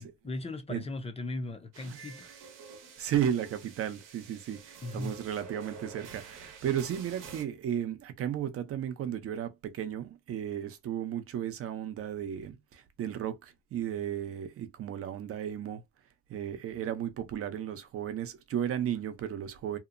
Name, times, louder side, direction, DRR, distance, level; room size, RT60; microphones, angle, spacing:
voice 1, 0.0-2.3 4.8-5.2, left 2 dB, 20° left, 0.5 m, -38 dB
sound 1, 1.7-7.4, right 6 dB, 75° right, 0.9 m, -49 dB
voice 2, 3.0-15.8 16.3-19.8, right 10 dB, 45° right, 0.6 m, -34 dB
2.8 x 2.0 x 2.4 m
cardioid pair, 110°, 33 cm